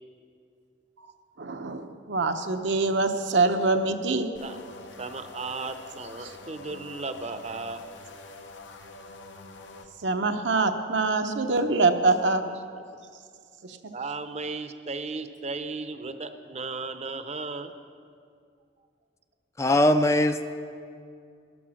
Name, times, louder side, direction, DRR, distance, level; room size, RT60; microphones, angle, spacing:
voice 1, 1.4-4.3 10.0-12.4 13.6-13.8, right 3 dB, 75° right, 6 dB, 0.8 m, -24 dB
sound 1, 4.3-9.9, left 3 dB, 80° left, 0.9 m, -46 dB
voice 2, 5.0-7.8 12.7-12.8 13.9-17.7, right 3 dB, 35° right, 9 dB, 0.6 m, -35 dB
voice 3, 19.6-20.4, left 1 dB, 15° left, 9 dB, 0.4 m, -20 dB
13.5 x 10.0 x 6.3 m, 2.3 s
head